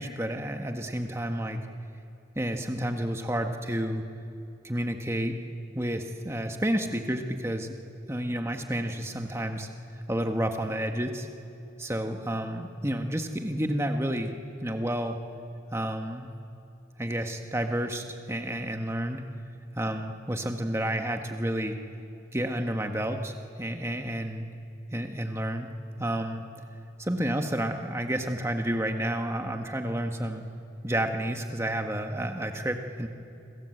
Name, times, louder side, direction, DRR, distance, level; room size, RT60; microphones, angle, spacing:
voice 1, 0.0-1.6 2.3-4.0 4.6-5.3 5.7-7.7 8.1-9.7 10.1-11.3 11.8-14.3 14.6-15.2 15.7-16.3 17.0-19.3 19.8-21.8 22.3-24.5 24.9-26.4 27.0-30.4 30.8-33.1, right 1 dB, 15° right, 4 dB, 1.5 m, -30 dB
26.5 x 25.5 x 8.0 m, 2.6 s
head